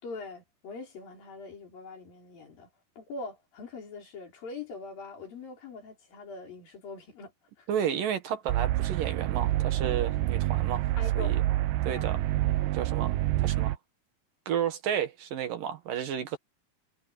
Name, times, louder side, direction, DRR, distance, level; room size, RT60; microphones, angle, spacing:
voice 1, 0.0-2.7 3.0-7.3 7.6-7.7 11.0-11.4 11.9-12.2, left 3 dB, 60° left, 6.6 m, -42 dB
voice 2, 7.7-10.9 11.2-11.4 11.8-12.2 12.7-13.1 13.4-13.8 14.5-16.4, right 9 dB, 65° right, 2.9 m, -32 dB
sound 1, 8.5-13.8, right 15 dB, 85° right, 2.0 m, -27 dB
omnidirectional pair, 4.5 m